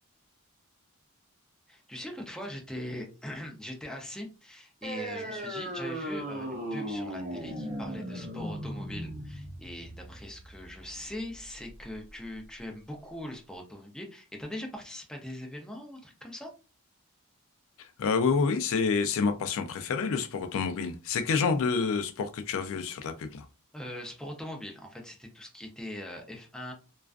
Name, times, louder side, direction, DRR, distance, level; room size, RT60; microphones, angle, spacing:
voice 1, 1.7-16.5 23.7-26.7, left 1 dB, 5° left, 0.4 m, -41 dB
sound 1, 4.8-11.8, equal, 35° right, 0.7 m, -37 dB
voice 2, 17.8-23.4, left 5 dB, 65° left, 0.3 m, -28 dB
2.3 x 2.3 x 2.3 m
head